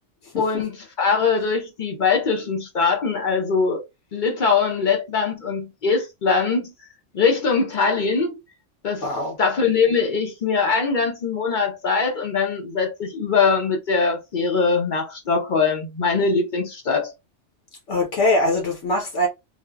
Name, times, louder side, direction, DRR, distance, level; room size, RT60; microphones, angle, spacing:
voice 1, 0.4-3.8 4.1-6.7 7.1-8.4 8.8-9.1 9.4-17.1, left 5 dB, 50° left, 0.6 m, -22 dB
voice 2, 9.0-9.4 17.9-19.3, left 1 dB, 75° left, 1.1 m, -22 dB
3.3 x 2.1 x 2.2 m
omnidirectional pair, 1.3 m